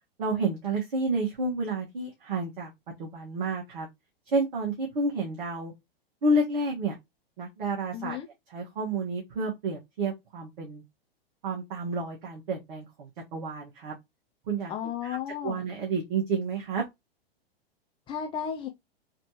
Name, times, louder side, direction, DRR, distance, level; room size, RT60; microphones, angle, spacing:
voice 1, 0.2-2.7 3.0-3.9 4.3-5.7 6.2-6.9 7.4-8.2 8.5-10.8 11.4-13.9 14.5-14.7 15.0-16.8, right 2 dB, 50° right, 1.6 m, -30 dB
voice 2, 7.9-8.3 14.7-15.6 18.1-18.7, left 9 dB, 15° left, 0.5 m, -33 dB
4.1 x 3.0 x 2.9 m
figure-of-eight pair, 100°, 30 cm